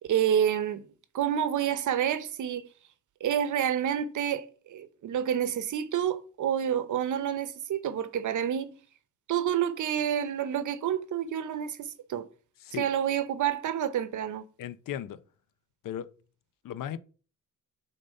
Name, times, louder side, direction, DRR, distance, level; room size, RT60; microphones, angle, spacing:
voice 1, 0.1-0.8 1.1-2.7 3.2-8.7 9.3-12.3 12.8-14.4, right 9 dB, 70° right, 0.8 m, -28 dB
voice 2, 14.6-15.2 15.8-16.1 16.6-17.0, left 10 dB, 85° left, 0.6 m, -36 dB
10.0 x 4.0 x 5.3 m
wide cardioid pair, 170°, 32 cm